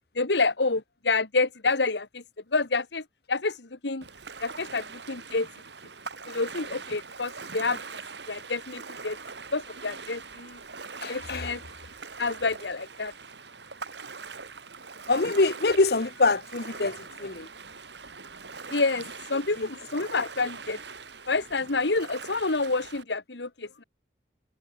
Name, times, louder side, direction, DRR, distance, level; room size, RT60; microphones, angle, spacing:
voice 1, 0.1-2.2 2.5-4.0 4.4-5.5 6.3-8.0 8.3-9.2 9.5-10.6 11.1-11.6 12.2-13.1 18.7-20.8 21.3-23.8, left 3 dB, 85° left, 1.6 m, -28 dB
Ocean, 4.0-23.0, right 4 dB, 85° right, 5.7 m, -42 dB
voice 2, 11.0-11.5 15.1-17.5 19.6-19.7, left 3 dB, 65° left, 1.1 m, -25 dB
head